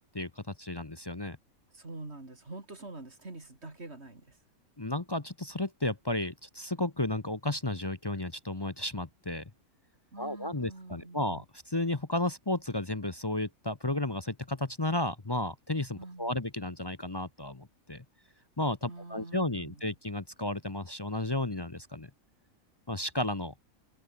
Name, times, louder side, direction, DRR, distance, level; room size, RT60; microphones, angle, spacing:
voice 1, 0.1-1.4 4.8-9.5 10.2-18.0 18.6-22.1 22.9-23.5, left 1 dB, 20° left, 0.8 m, -33 dB
voice 2, 1.7-4.4 10.1-11.4 16.0-16.4 18.8-20.0, right 2 dB, 50° right, 3.9 m, -46 dB
open air
omnidirectional pair, 1.5 m